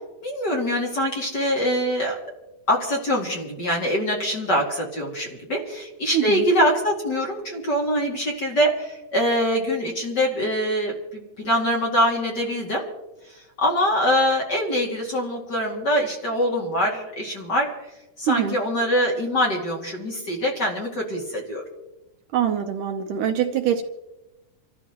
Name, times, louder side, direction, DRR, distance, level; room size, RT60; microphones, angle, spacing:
voice 1, 0.2-2.2 2.7-12.9 13.6-17.7 18.2-21.6, equal, 35° left, -2 dB, 2.5 m, -24 dB
voice 2, 6.1-6.5 18.3-18.6 22.3-23.8, right 9 dB, 75° right, 5 dB, 2.3 m, -23 dB
29.0 x 13.5 x 3.0 m, 1.0 s
omnidirectional pair, 4.1 m